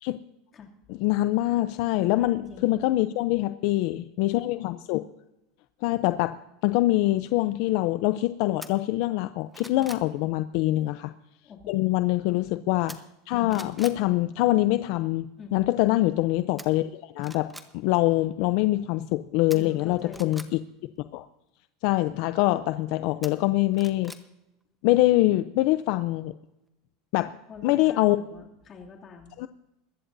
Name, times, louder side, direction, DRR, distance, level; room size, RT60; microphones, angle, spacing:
voice 1, 1.0-5.0 5.8-6.4 6.6-11.1 11.7-20.4 21.1-21.2 21.8-24.1 24.8-26.3 27.1-27.3 27.6-28.2 29.4-29.5, left 17 dB, 60° left, 12 dB, 0.5 m, -24 dB
voice 2, 2.0-2.7 9.8-9.9 11.4-12.0 15.4-15.7 19.5-20.4 27.5-29.3, left 5 dB, 30° left, 1 dB, 2.6 m, -44 dB
sound 1, 8.6-8.7 9.2-10.1 12.9-13.2 13.5-14.0 16.6-16.7 17.2-17.7 19.5-20.5 23.2-24.2 24.6-24.7, right 1 dB, 5° right, 1.0 m, -43 dB
21.5 x 14.5 x 2.7 m, 0.91 s
supercardioid pair, 140°, 0 cm